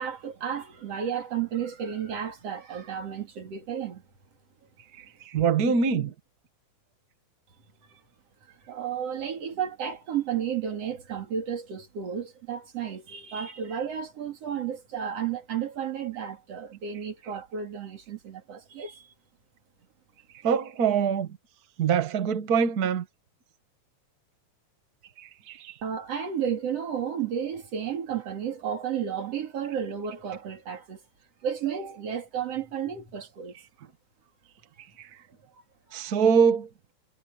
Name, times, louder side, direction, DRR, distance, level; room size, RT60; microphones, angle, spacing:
voice 1, 0.0-4.0 7.9-8.0 8.5-19.1 25.8-31.0 31.4-33.6 35.9-36.2, right 8 dB, 45° right, 3.5 m, -32 dB
voice 2, 5.2-6.1 20.4-21.3 21.8-23.0 25.2-25.7 35.0-35.1 35.9-36.7, right 6 dB, 90° right, 0.8 m, -24 dB
omnidirectional pair, 4.0 m